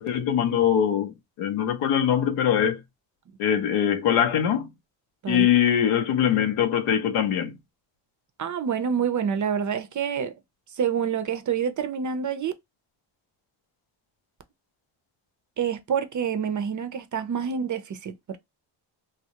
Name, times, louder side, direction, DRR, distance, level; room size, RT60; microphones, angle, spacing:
voice 1, 0.0-1.1 1.4-2.8 3.4-4.7 5.3-7.5, left 9 dB, 85° left, 0.6 m, -22 dB
voice 2, 8.4-10.3 10.7-12.5 15.6-18.4, right 7 dB, 40° right, 0.4 m, -27 dB
2.3 x 2.0 x 2.7 m
supercardioid pair, 50°, 49 cm